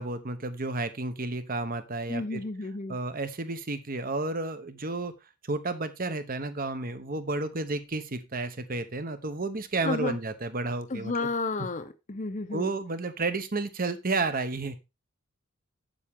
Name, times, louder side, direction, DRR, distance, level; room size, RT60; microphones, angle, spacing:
voice 1, 0.0-5.1 5.5-11.3 11.6-11.7 12.5-14.8, right 3 dB, 40° right, 11 dB, 1.0 m, -32 dB
voice 2, 2.1-3.0 9.8-10.2 10.9-12.7, left 3 dB, 35° left, 8 dB, 0.7 m, -32 dB
8.5 x 7.5 x 3.6 m, 0.26 s
head